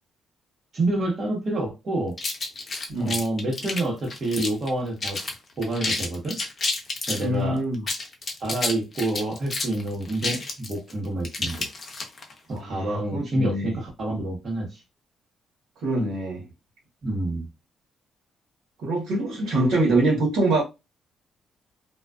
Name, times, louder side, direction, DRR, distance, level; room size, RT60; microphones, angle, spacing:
voice 1, 0.7-2.2 3.0-5.2 5.6-6.4 7.1-7.6 8.4-11.7 12.5-14.8 17.0-17.5, right 2 dB, 45° right, 1.0 m, -28 dB
sound 1, 2.2-4.7 5.0-5.3 5.6-7.3 7.7-12.3, left 3 dB, 40° left, 0.7 m, -30 dB
voice 2, 7.2-7.8 12.5-13.7 15.8-16.4 18.8-20.6, right 2 dB, 85° right, 1.0 m, -24 dB
2.3 x 2.3 x 2.3 m
cardioid pair, 90°, 0 cm